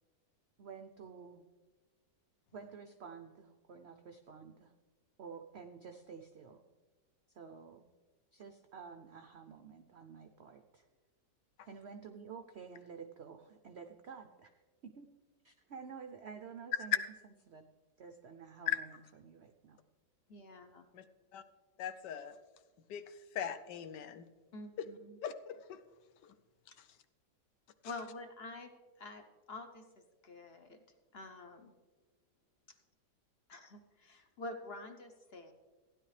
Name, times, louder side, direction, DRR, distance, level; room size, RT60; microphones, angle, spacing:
voice 1, 0.6-1.4 2.5-4.7 5.2-6.6 7.3-7.9 8.3-10.9 11.7-14.5 14.8-15.1 15.4-17.0 17.5-17.6 18.0-19.0 19.2-19.8, right 6 dB, 75° right, 6 dB, 0.6 m, -50 dB
voice 2, 20.3-20.8 24.5-25.2 27.8-28.7 29.0-29.9 30.2-30.8 31.1-31.7 33.5-35.5, left 2 dB, 55° left, 6 dB, 0.7 m, -47 dB
voice 3, 21.8-22.3 22.9-23.0 23.3-24.3 25.2-25.8 26.2-26.3, left 9 dB, 80° left, 10 dB, 1.3 m, -39 dB
15.5 x 10.5 x 3.2 m, 1.3 s
omnidirectional pair, 1.9 m